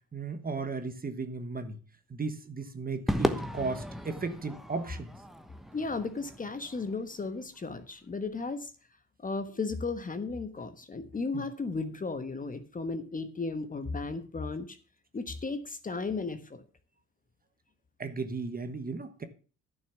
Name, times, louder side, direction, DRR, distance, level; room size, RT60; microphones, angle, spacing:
voice 1, 0.1-1.8 2.1-5.1 11.3-11.4 18.0-19.2, right 4 dB, 25° right, 1.3 m, -35 dB
Crowd / Fireworks, 3.1-7.6, equal, ahead, 1.1 m, -35 dB
voice 2, 5.7-8.7 9.2-14.8 15.1-16.6, left 3 dB, 20° left, 1.2 m, -35 dB
11.0 x 6.3 x 7.1 m
cardioid pair, 110°, 37 cm